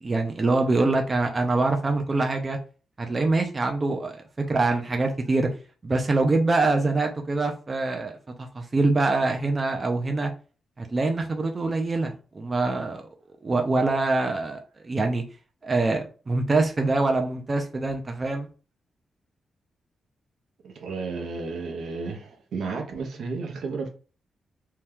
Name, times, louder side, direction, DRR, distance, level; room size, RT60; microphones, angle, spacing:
voice 1, 0.0-2.6 3.0-5.5 5.8-8.1 8.4-10.3 10.8-13.0 13.4-15.2 15.6-18.5, right 3 dB, 30° right, 0.4 m, -24 dB
voice 2, 20.6-23.9, right 4 dB, 75° right, 0.7 m, -32 dB
2.8 x 2.3 x 3.4 m
cardioid pair, 110°, 0 cm